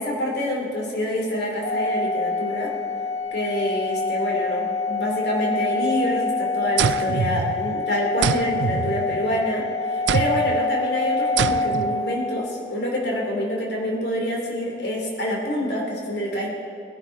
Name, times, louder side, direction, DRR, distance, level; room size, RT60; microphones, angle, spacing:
voice 1, 0.0-2.7 3.3-9.6 9.9-16.5, left 1 dB, 70° left, -2 dB, 2.8 m, -26 dB
Organ, 1.6-12.5, left 3 dB, 35° left, 0.8 m, -26 dB
sound 1, 6.8-7.8 8.2-9.5 10.1-10.6 11.4-12.0, right 7 dB, 80° right, 0.3 m, -25 dB
20.5 x 11.0 x 4.5 m, 2.7 s
head